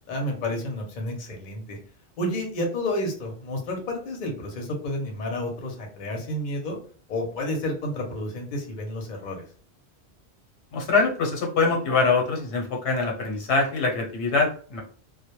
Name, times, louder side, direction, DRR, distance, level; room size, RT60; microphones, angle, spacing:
voice 1, 0.1-1.8 2.2-6.8 7.1-9.4, left 1 dB, 50° left, 2 dB, 0.7 m, -30 dB
voice 2, 10.7-14.8, left 4 dB, 90° left, 1 dB, 1.0 m, -24 dB
2.1 x 2.0 x 2.9 m, 0.43 s
omnidirectional pair, 1.1 m